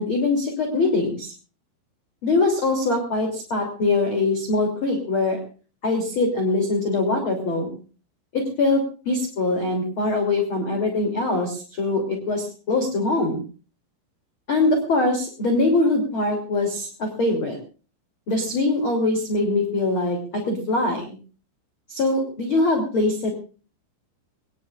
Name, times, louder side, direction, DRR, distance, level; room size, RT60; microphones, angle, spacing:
voice 1, 0.0-1.3 2.2-5.4 5.8-7.7 8.3-13.4 14.5-17.6 18.3-21.2 21.9-23.3, left 2 dB, 30° left, 2 dB, 3.0 m, -23 dB
22.5 x 20.0 x 2.5 m, 0.37 s
omnidirectional pair, 6.0 m